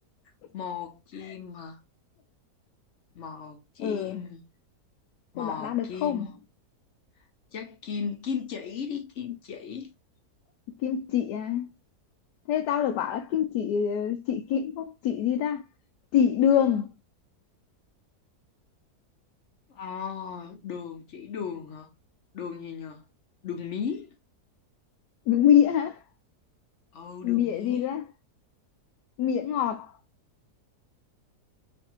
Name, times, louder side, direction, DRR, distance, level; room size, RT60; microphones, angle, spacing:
voice 1, 0.5-1.8 3.1-4.4 5.3-6.3 7.5-9.9 19.7-21.9 22.3-23.1 23.4-24.1 26.9-27.8, left 6 dB, 60° left, 0.8 m, -36 dB
voice 2, 3.8-4.2 5.4-6.3 10.8-11.7 12.5-15.6 16.1-16.9 25.3-26.0 27.2-28.0 29.2-29.9, left 9 dB, 80° left, 1.2 m, -25 dB
3.1 x 2.6 x 4.4 m
omnidirectional pair, 1.8 m